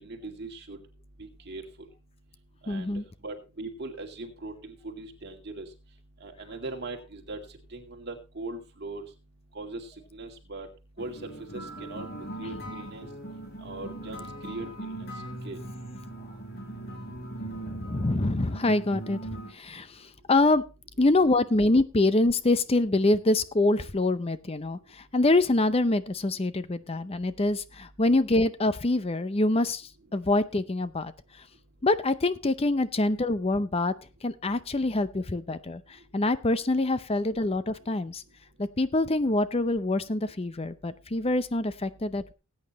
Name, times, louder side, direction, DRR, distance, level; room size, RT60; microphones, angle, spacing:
voice 1, 0.0-0.8 1.2-1.6 2.6-2.9 3.2-5.7 6.2-7.4 7.7-9.0 9.6-9.8 10.1-10.7 11.0-12.1 12.4-13.1 13.6-15.1 15.4-15.6, right 2 dB, 50° right, 3 dB, 2.2 m, -39 dB
voice 2, 2.7-3.0 17.5-20.6 21.0-31.1 31.8-33.9 34.2-35.8 36.1-38.2 38.6-42.3, left 2 dB, 25° left, 13 dB, 0.6 m, -25 dB
sound 1, 11.0-19.5, right 1 dB, 45° left, 2.7 m, -39 dB
19.5 x 8.9 x 3.0 m, 0.30 s
head